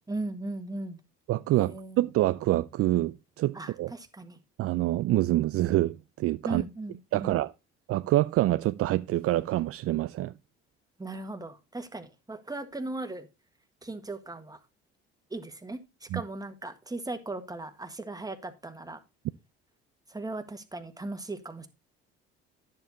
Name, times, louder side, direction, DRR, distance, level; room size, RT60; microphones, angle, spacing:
voice 1, 0.1-1.0 1.5-2.0 3.5-4.4 6.4-7.3 11.0-13.3 13.8-14.6 15.3-19.0 20.1-21.7, right 2 dB, 15° right, 1.6 m, -38 dB
voice 2, 1.3-3.9 4.6-6.6 7.1-7.5 7.9-10.3 16.1-16.2, right 16 dB, 55° right, 0.4 m, -26 dB
10.0 x 7.4 x 4.1 m
supercardioid pair, 70°, 29 cm